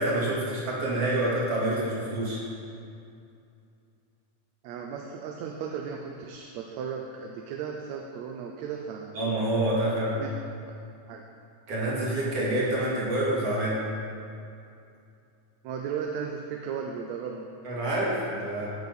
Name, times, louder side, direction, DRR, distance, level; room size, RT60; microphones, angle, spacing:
voice 1, 0.0-2.4 9.1-10.1 11.7-13.8 17.6-18.7, right 1 dB, 55° right, -6 dB, 3.3 m, -27 dB
voice 2, 4.6-9.3 10.0-10.3 11.1-11.2 15.6-17.5, right 6 dB, 75° right, 2 dB, 1.9 m, -35 dB
15.0 x 6.0 x 5.4 m, 2.5 s
omnidirectional pair, 3.4 m